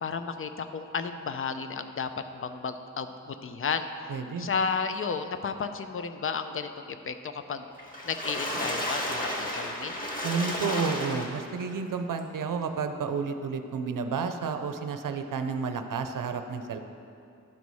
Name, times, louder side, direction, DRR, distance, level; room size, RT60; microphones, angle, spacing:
voice 1, 0.0-7.7 8.0-10.0, left 5 dB, 45° left, 9 dB, 0.4 m, -33 dB
voice 2, 4.1-4.5 10.2-16.8, right 5 dB, 85° right, 7 dB, 0.6 m, -31 dB
Water / Splash splatter, 7.8-11.6 12.2-12.3 12.6-12.7, equal, 25° left, 1.3 m, -32 dB
12.0 x 4.1 x 4.7 m, 2.6 s
wide cardioid pair, 115°, 31 cm